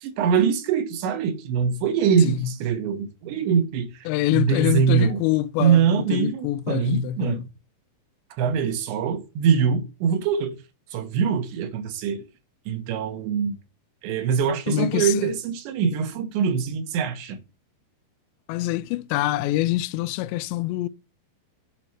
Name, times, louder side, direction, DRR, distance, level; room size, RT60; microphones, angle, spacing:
voice 1, 0.0-3.9 4.3-5.2 5.6-7.4 8.4-10.6 10.9-12.2 12.7-13.6 14.0-17.4, right 7 dB, 90° right, 3.5 m, -23 dB
voice 2, 4.1-7.4 14.7-15.3 18.5-20.9, left 16 dB, 90° left, 2.8 m, -25 dB
7.9 x 4.4 x 5.9 m
omnidirectional pair, 5.0 m